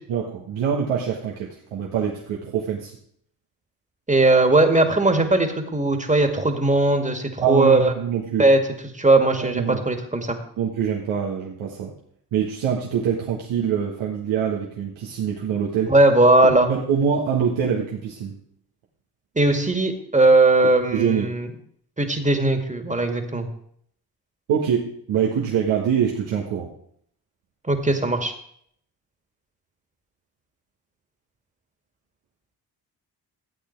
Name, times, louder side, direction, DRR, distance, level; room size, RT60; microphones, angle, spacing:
voice 1, 0.1-3.0 7.4-8.5 9.4-9.8 10.6-11.9 12.3-15.9 16.7-18.4 20.9-21.4 24.5-26.7, right 7 dB, 75° right, -3 dB, 1.7 m, -24 dB
voice 2, 4.1-7.9 8.4-8.6 8.9-10.4 15.9-16.7 19.4-21.5 22.0-23.5 27.7-28.3, right 2 dB, 15° right, 6 dB, 2.1 m, -18 dB
13.0 x 8.5 x 4.6 m, 0.66 s
supercardioid pair, 45°, 47 cm